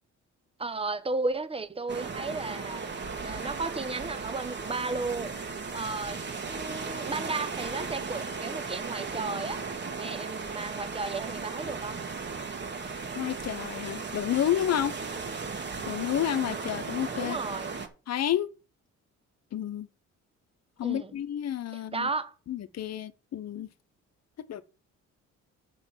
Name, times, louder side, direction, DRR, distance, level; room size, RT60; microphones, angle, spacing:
voice 1, 0.6-2.8 3.2-5.4 5.7-9.6 10.0-12.0 17.2-17.7 20.8-21.1 21.7-22.3, right 3 dB, 20° right, 1.0 m, -34 dB
sound 1, 1.9-17.9, right 4 dB, 35° right, 1.8 m, -36 dB
voice 2, 13.1-15.0 15.8-17.4 18.1-18.5 19.5-19.9 20.8-22.1 22.5-23.7 24.4-24.6, left 11 dB, 60° left, 1.0 m, -30 dB
6.8 x 6.0 x 7.1 m
cardioid pair, 90°, 30 cm